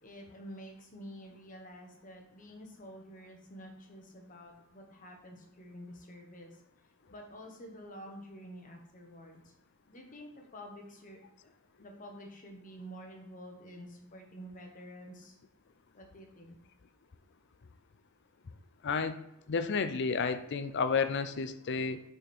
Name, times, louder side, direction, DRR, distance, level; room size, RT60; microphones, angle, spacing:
voice 1, 0.0-6.5 7.1-9.4 9.9-11.2 11.8-15.4 15.9-16.6, equal, 40° left, 2 dB, 1.3 m, -49 dB
voice 2, 18.8-19.2 19.5-22.0, left 5 dB, 55° left, 11 dB, 0.5 m, -31 dB
6.1 x 5.1 x 4.4 m, 0.81 s
head